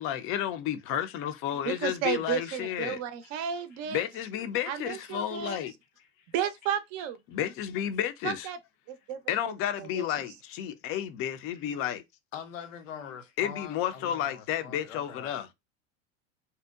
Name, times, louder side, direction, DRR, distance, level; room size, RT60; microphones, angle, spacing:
voice 1, 0.0-3.0 3.9-5.7 7.3-8.5 9.3-12.0 13.4-15.5, left 10 dB, 35° left, 0.4 m, -31 dB
voice 2, 1.6-4.0 4.7-5.6 6.3-7.2 8.2-8.6 8.9-9.5 9.8-10.1, right 9 dB, 45° right, 0.5 m, -33 dB
voice 3, 6.0-6.3 11.5-11.6 12.3-15.4, left 8 dB, 80° left, 0.6 m, -44 dB
2.7 x 2.0 x 2.2 m
hypercardioid pair, 90°, 38 cm